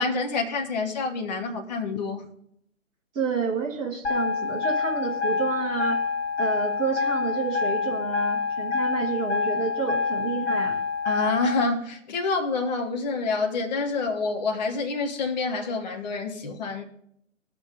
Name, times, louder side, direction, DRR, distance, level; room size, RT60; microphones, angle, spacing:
voice 1, 0.0-2.3 11.1-16.8, left 3 dB, 30° left, 1.3 m, -27 dB
voice 2, 3.1-6.0 6.4-10.8, right 5 dB, 15° right, 1.3 m, -29 dB
sound 1, 4.0-11.6, left 5 dB, 55° left, 2.2 m, -27 dB
19.5 x 6.5 x 3.8 m
figure-of-eight pair, 135°, 41 cm